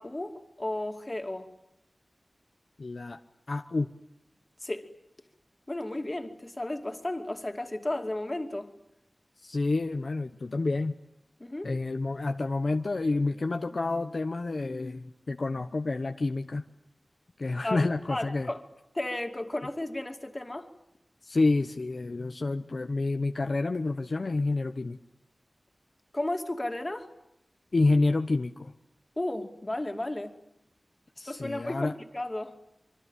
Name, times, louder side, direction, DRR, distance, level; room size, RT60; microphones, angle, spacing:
voice 1, 0.0-1.5 4.6-4.9 5.7-8.7 11.4-11.7 17.6-18.6 18.9-20.7 26.1-27.1 29.2-30.4 31.2-32.5, left 1 dB, 30° left, 2.7 m, -34 dB
voice 2, 2.8-3.2 3.5-3.9 9.4-11.0 11.6-16.6 17.4-18.5 21.2-25.0 27.7-28.7 31.2-31.9, left 3 dB, 60° left, 1.0 m, -28 dB
26.5 x 24.0 x 9.2 m
wide cardioid pair, 75°, 0 cm